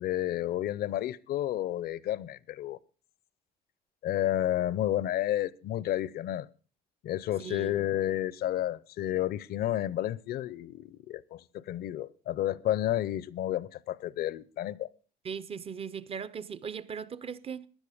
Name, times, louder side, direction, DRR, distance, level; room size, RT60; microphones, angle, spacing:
voice 1, 0.0-2.8 4.0-6.5 7.0-14.9, left 13 dB, 65° left, 0.6 m, -31 dB
voice 2, 7.4-7.8 15.2-17.7, right 6 dB, 35° right, 0.7 m, -39 dB
15.5 x 10.5 x 5.0 m
cardioid pair, 110°, 17 cm